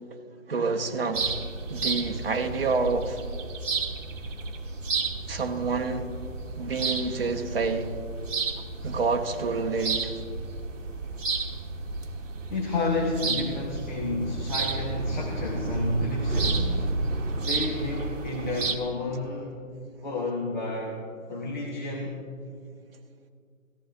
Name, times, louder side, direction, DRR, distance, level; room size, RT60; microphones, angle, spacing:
voice 1, 0.5-1.4 1.7-3.2 5.3-6.1 6.6-8.0 8.8-10.1, right 4 dB, 45° right, 1.0 m, -28 dB
sound 1, 1.1-18.8, right 3 dB, 65° right, 1.3 m, -31 dB
voice 2, 12.5-16.9 17.4-19.6 20.0-21.0 21.3-22.2, left 2 dB, 35° left, 1.2 m, -30 dB
18.0 x 14.5 x 2.6 m
hypercardioid pair, 165°, 41 cm